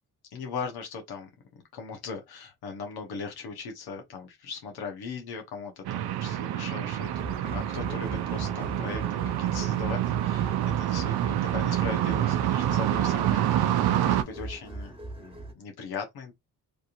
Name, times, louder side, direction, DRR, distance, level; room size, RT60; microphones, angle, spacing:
voice 1, 0.3-7.1 7.4-16.3, left 5 dB, 90° left, 1.1 m, -39 dB
sound 1, 5.8-14.2, right 12 dB, 85° right, 0.5 m, -27 dB
sound 2, 7.0-15.5, right 1 dB, 15° right, 1.2 m, -40 dB
3.4 x 2.8 x 2.6 m
cardioid pair, 90°, 37 cm